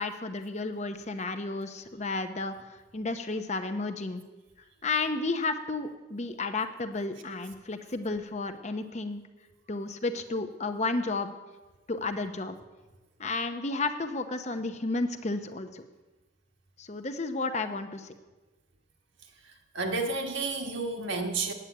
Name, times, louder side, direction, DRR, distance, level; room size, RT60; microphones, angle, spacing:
voice 1, 0.0-4.2 4.8-9.2 9.7-11.3 11.9-12.5 13.2-15.8 16.8-18.1, left 3 dB, 35° left, 7 dB, 0.7 m, -32 dB
voice 2, 19.4-21.5, right 3 dB, 75° right, 2 dB, 1.5 m, -31 dB
9.0 x 8.8 x 7.9 m, 1.2 s
head